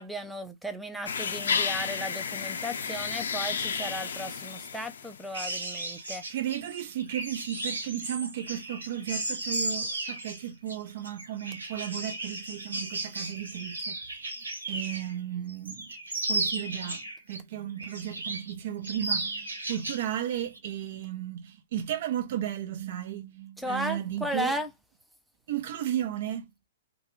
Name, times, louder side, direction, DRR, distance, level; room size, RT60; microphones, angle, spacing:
voice 1, 0.0-6.2 23.6-24.7, equal, ahead, 0.4 m, -35 dB
sound 1, 1.1-5.4, left 6 dB, 75° left, 0.6 m, -32 dB
sound 2, 5.3-15.2 15.5-17.4 17.8-18.5 18.8-20.1 20.4-20.6, right 2 dB, 85° right, 1.2 m, -35 dB
voice 2, 6.3-14.0 14.7-15.9 16.3-17.0 17.3-24.6 25.5-26.5, right 11 dB, 55° right, 0.7 m, -34 dB
2.2 x 2.2 x 3.0 m
hypercardioid pair, 120°, 0 cm